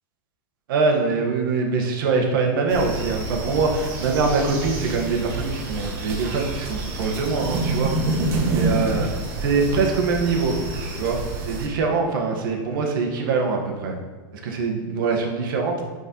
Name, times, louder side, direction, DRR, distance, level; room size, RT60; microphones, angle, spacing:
voice 1, 0.7-8.2 8.5-9.1 9.4-10.6 10.9-13.9 14.3-15.8, right 4 dB, 70° right, 2 dB, 1.2 m, -23 dB
sound 1, 2.7-11.7, right 2 dB, 45° right, 1.5 m, -28 dB
9.1 x 3.8 x 2.9 m, 1.4 s
supercardioid pair, 140°, 12 cm